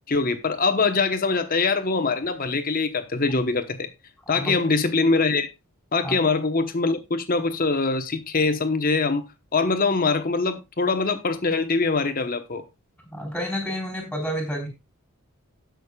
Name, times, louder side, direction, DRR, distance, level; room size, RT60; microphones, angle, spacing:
voice 1, 0.1-3.9 4.3-5.5 5.9-9.3 9.5-12.6, left 4 dB, 40° left, 1.0 m, -23 dB
voice 2, 4.3-4.6 6.0-6.2 13.1-14.7, equal, 5° left, 3.7 m, -29 dB
18.0 x 6.3 x 2.3 m
head